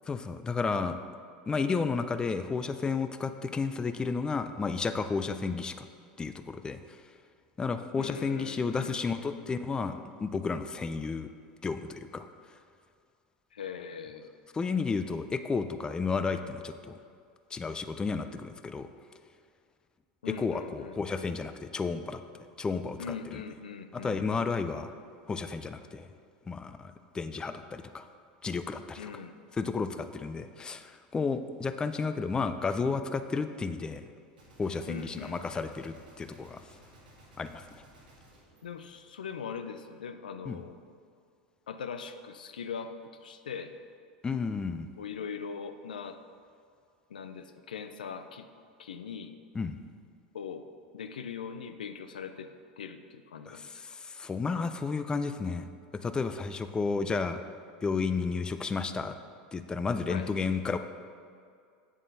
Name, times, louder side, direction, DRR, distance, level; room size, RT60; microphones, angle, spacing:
voice 1, 0.1-1.0 1.5-5.9 6.2-7.0 7.6-11.3 11.6-12.3 14.5-16.9 17.5-18.9 20.4-23.0 23.3-23.4 23.9-24.9 25.3-26.1 26.5-28.1 28.4-29.1 29.6-34.0 34.6-36.6 37.4-37.6 40.5-40.6 44.2-44.9 49.5-49.8 53.5-55.7 56.0-57.4 57.8-59.2 59.5-60.8, left 4 dB, 20° left, 10 dB, 0.4 m, -32 dB
voice 2, 7.9-9.4 13.5-14.4 20.2-21.0 23.0-24.2 29.0-29.3 34.9-35.6 38.6-40.7 41.7-43.7 45.0-46.2 47.1-48.5 48.8-49.4 50.3-50.7 50.9-52.5 52.8-53.8 60.1-60.3, left 6 dB, 85° left, 9 dB, 0.4 m, -41 dB
Gunshot gunfire, 34.4-39.6, right 1 dB, 90° right, 1.7 m, -57 dB
8.4 x 7.2 x 2.7 m, 2.3 s
hypercardioid pair, 90°, 5 cm